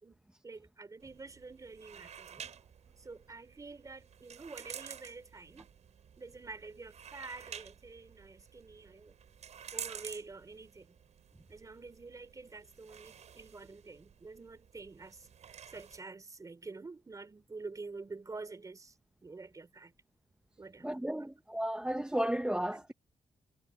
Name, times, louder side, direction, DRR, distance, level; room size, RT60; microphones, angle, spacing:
voice 1, 0.0-2.5 3.0-5.7 6.2-9.2 9.7-11.0 11.5-15.3 15.7-18.9 19.2-19.9 20.6-21.0 22.7-22.8, right 3 dB, 25° right, 4.5 m, -48 dB
sound 1, 1.0-16.0, right 8 dB, 65° right, 6.0 m, -50 dB
voice 2, 20.8-22.9, right 1 dB, 5° right, 0.7 m, -33 dB
cardioid pair, 110°, 13 cm